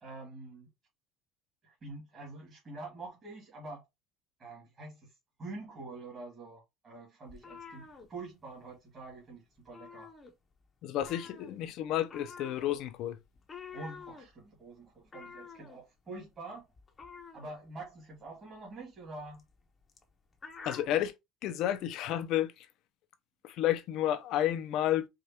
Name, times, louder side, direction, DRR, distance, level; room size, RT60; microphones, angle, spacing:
voice 1, 0.0-0.7 1.6-3.8 4.4-5.1 5.4-10.1 13.7-16.6 17.3-19.4, right 2 dB, 30° right, 2.0 m, -46 dB
sound 1, 7.3-8.8 9.0-9.3 9.6-10.7 11.0-21.1, left 5 dB, 20° left, 0.9 m, -50 dB
voice 2, 10.8-13.2 20.7-21.1 21.4-22.7 23.4-25.1, left 12 dB, 60° left, 0.7 m, -31 dB
4.9 x 2.6 x 2.8 m
cardioid pair, 130°, 0 cm